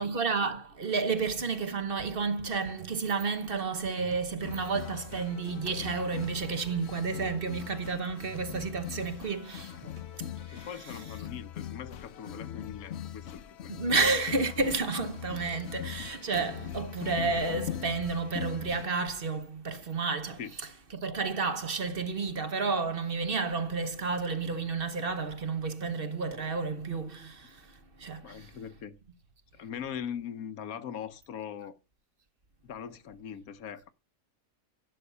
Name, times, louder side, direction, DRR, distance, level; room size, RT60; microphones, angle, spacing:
voice 1, 0.0-9.8 10.2-11.0 13.7-28.6, right 4 dB, 45° right, 1.0 m, -31 dB
sound 1, 2.0-10.4, right 8 dB, 80° right, 1.2 m, -51 dB
sound 2, 4.4-18.9, left 10 dB, 60° left, 0.9 m, -41 dB
voice 2, 10.5-13.7 20.4-20.5 28.2-29.0 29.5-31.8 32.6-33.9, left 8 dB, 85° left, 1.3 m, -41 dB
11.0 x 6.0 x 5.5 m
omnidirectional pair, 1.5 m